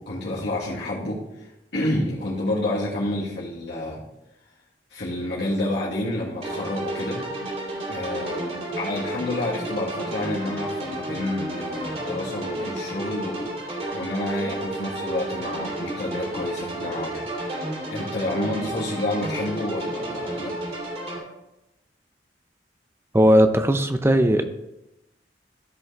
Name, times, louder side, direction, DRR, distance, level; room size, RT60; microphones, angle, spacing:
voice 1, 0.0-4.0 4.9-7.2 7.9-13.5 13.9-20.5, left 1 dB, 75° left, -8 dB, 2.2 m, -29 dB
sound 1, 6.4-21.2, right 1 dB, 35° right, 2.9 m, -31 dB
voice 2, 23.1-24.4, equal, 15° right, 9 dB, 0.6 m, -17 dB
15.0 x 5.2 x 3.4 m, 0.91 s
head